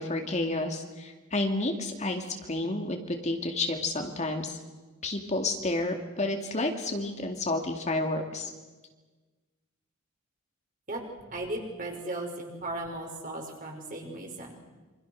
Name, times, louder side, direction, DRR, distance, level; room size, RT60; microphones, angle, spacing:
voice 1, 0.0-4.6 5.0-8.5, left 2 dB, 35° left, 4 dB, 2.4 m, -30 dB
voice 2, 11.3-14.5, right 2 dB, 40° right, 1 dB, 5.7 m, -36 dB
27.5 x 26.0 x 6.4 m, 1.3 s
head